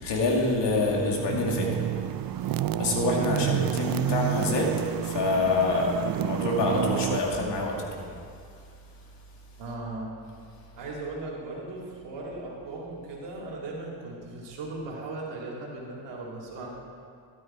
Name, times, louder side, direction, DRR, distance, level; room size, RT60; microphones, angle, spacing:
voice 1, 0.0-1.9 2.4-8.1 8.6-8.7, left 3 dB, 70° left, 0 dB, 2.2 m, -27 dB
sound 1, 0.9-7.2, right 12 dB, 50° right, 0.5 m, -29 dB
voice 2, 3.3-3.7 9.6-10.1 10.8-16.7, right 2 dB, 70° right, -4 dB, 2.8 m, -37 dB
12.5 x 9.7 x 4.4 m, 2.3 s
cardioid pair, 75°, 45 cm